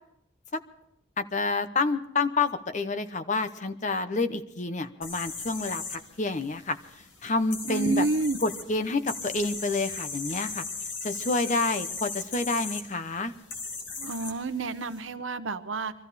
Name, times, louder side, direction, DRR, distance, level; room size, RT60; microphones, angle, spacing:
voice 1, 1.2-6.8 7.2-8.0 8.4-10.6 11.0-13.3, left 3 dB, 40° left, 10 dB, 0.9 m, -28 dB
sound 1, 5.0-15.0, left 4 dB, 70° left, 2.2 m, -38 dB
voice 2, 7.7-8.4 14.0-15.9, right 3 dB, 85° right, 11 dB, 0.9 m, -29 dB
23.0 x 14.0 x 4.2 m, 0.80 s
head